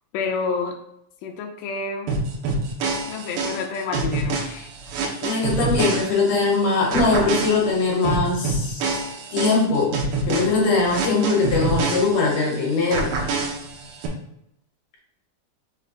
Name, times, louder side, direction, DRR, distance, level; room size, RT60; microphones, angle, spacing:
voice 1, 0.1-0.8 1.2-2.1 3.1-4.7, left 4 dB, 80° left, 3 dB, 1.5 m, -29 dB
sound 1, 2.1-6.5 6.9-12.5 12.9-14.1, right 3 dB, 85° right, 2.2 m, -27 dB
voice 2, 5.2-9.1 9.3-10.0 10.3-13.1, left 3 dB, 65° left, -2 dB, 2.1 m, -21 dB
6.3 x 2.2 x 3.9 m, 0.77 s
omnidirectional pair, 3.7 m